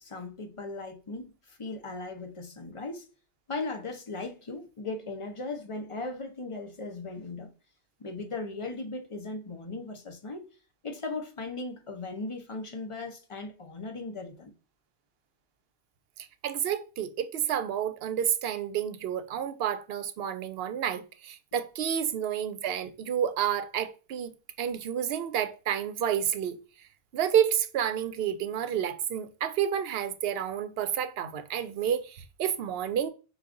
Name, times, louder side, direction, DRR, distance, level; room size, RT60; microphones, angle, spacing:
voice 1, 0.0-3.1 3.5-7.5 8.0-10.5 10.8-14.5, left 3 dB, 35° left, 0.6 m, -38 dB
voice 2, 16.4-24.3 24.6-26.6 27.1-33.1, right 9 dB, 65° right, 0.7 m, -30 dB
4.7 x 2.4 x 3.6 m
omnidirectional pair, 1.1 m